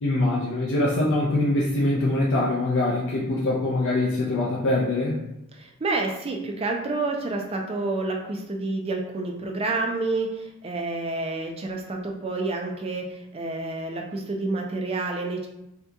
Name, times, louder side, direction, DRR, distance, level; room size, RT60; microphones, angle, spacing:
voice 1, 0.0-5.2, left 2 dB, 55° left, -5 dB, 0.5 m, -23 dB
voice 2, 5.5-15.5, right 2 dB, 25° right, 2 dB, 0.4 m, -29 dB
3.6 x 2.8 x 2.2 m, 0.88 s
head